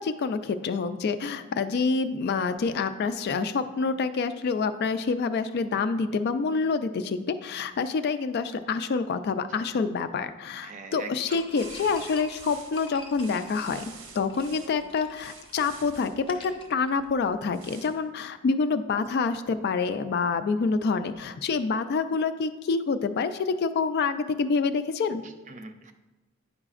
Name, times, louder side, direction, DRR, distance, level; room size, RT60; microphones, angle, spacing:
voice 1, 0.0-25.2, left 4 dB, 50° left, 11 dB, 0.3 m, -27 dB
voice 2, 10.6-11.4 25.2-25.9, right 4 dB, 35° right, 6 dB, 0.5 m, -42 dB
sound 1, 11.3-17.5, left 3 dB, 25° left, 0.7 m, -48 dB
sound 2, 11.5-14.7 15.2-16.1 17.5-17.9, right 5 dB, 90° right, 0.9 m, -47 dB
9.6 x 4.9 x 2.4 m, 1.1 s
head